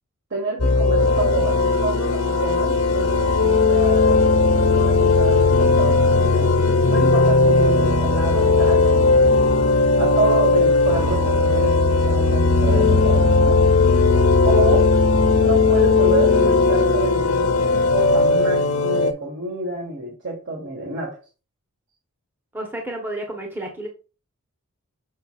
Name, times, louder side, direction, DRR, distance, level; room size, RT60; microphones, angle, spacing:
voice 1, 0.3-4.2 4.7-6.5 6.9-9.4 10.0-13.6 14.4-14.9 15.4-21.2, right 2 dB, 55° right, -2 dB, 1.6 m, -28 dB
sound 1, 0.6-19.1, left 3 dB, 75° left, 1.1 m, -17 dB
voice 2, 14.0-14.3 22.5-23.9, right 1 dB, 10° right, 1 dB, 1.0 m, -32 dB
6.5 x 6.3 x 2.4 m, 0.34 s
head